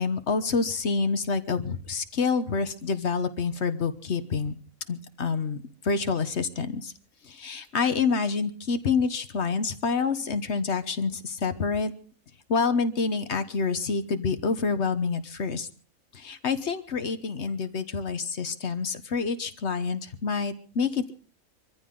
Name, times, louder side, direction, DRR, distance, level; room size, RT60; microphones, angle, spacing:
voice 1, 0.0-4.6 4.9-6.9 7.2-11.9 12.5-15.7 16.1-21.2, left 5 dB, 55° left, 10 dB, 1.4 m, -27 dB
24.0 x 14.5 x 3.8 m, 0.40 s
omnidirectional pair, 1.4 m